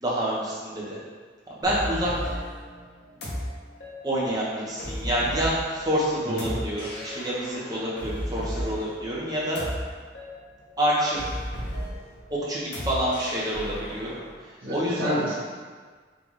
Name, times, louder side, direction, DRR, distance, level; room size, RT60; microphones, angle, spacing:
voice 1, 0.0-1.0 1.5-2.1 4.0-9.6 10.8-11.4 12.3-14.1 14.4-15.2, equal, 20° right, -7 dB, 0.9 m, -27 dB
sound 1, 1.6-14.3, equal, 60° left, 1.0 m, -35 dB
voice 2, 14.6-15.3, equal, 50° right, -10 dB, 1.2 m, -28 dB
4.0 x 2.5 x 4.6 m, 1.6 s
head